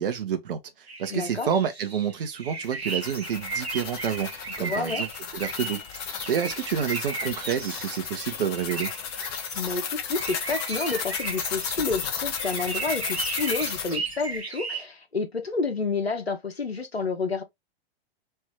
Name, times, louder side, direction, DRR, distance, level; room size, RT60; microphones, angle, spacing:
voice 1, 0.0-4.3 4.6-5.1 5.3-5.8 6.3-8.9, right 8 dB, 60° right, 0.8 m, -28 dB
sound 1, 0.9-14.8, right 4 dB, 90° right, 0.8 m, -36 dB
voice 2, 1.1-1.5 4.6-5.0 9.5-17.4, left 4 dB, 85° left, 1.0 m, -29 dB
sound 2, 2.6-14.0, left 8 dB, 40° left, 0.9 m, -34 dB
3.2 x 2.7 x 3.5 m
figure-of-eight pair, 100°, 31 cm